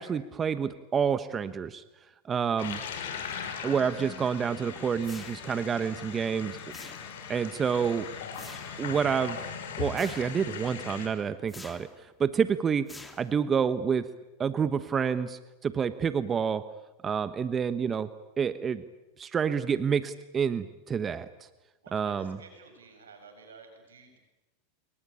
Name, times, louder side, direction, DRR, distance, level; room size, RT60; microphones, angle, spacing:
voice 1, 0.0-1.8 2.2-2.8 3.6-6.6 7.3-8.1 8.8-9.5 9.8-14.1 14.4-16.7 17.0-18.1 18.4-18.8 19.2-21.3 21.9-22.4, right 7 dB, 25° right, 13 dB, 1.2 m, -28 dB
sound 1, 2.6-11.1, left 7 dB, 75° left, 6.2 m, -39 dB
sound 2, 3.8-8.8, left 8 dB, 35° left, 3.7 m, -53 dB
sound 3, 5.0-5.7 6.7-7.4 8.3-8.8 10.0-10.5 11.5-12.0 12.9-13.6, left 2 dB, 10° left, 3.1 m, -47 dB
voice 2, 21.8-24.2, right 4 dB, 90° right, 6 dB, 7.5 m, -51 dB
28.5 x 23.5 x 8.6 m, 1.1 s
hypercardioid pair, 100°, 0 cm